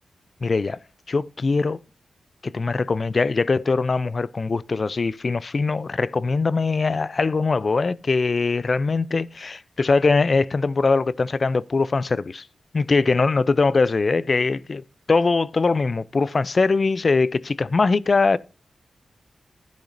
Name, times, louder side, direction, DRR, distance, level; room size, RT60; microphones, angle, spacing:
voice 1, 0.4-0.8 1.1-1.8 2.4-12.4 12.7-18.4, left 4 dB, 45° left, 0.4 m, -22 dB
11.5 x 10.5 x 2.5 m
wide cardioid pair, 95°, 0 cm